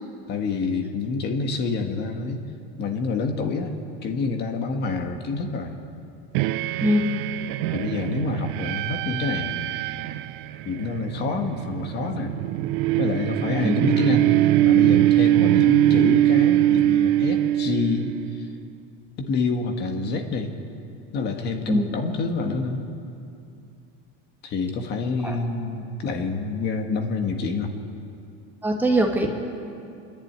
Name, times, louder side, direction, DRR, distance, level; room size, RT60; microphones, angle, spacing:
voice 1, 0.3-2.4 2.8-3.7 4.0-5.7 7.7-9.6 10.6-12.3 13.0-14.3 14.6-18.5 19.2-20.6 21.1-22.8 24.4-27.7, left 4 dB, 35° left, 4 dB, 1.7 m, -27 dB
sound 1, 6.3-18.4, right 14 dB, 65° right, 0.7 m, -22 dB
voice 2, 6.8-7.1 13.6-13.7 21.7-21.9 25.2-25.4 28.6-29.3, equal, 5° right, 1 dB, 1.6 m, -21 dB
26.0 x 11.0 x 9.6 m, 2.6 s
supercardioid pair, 150°, 29 cm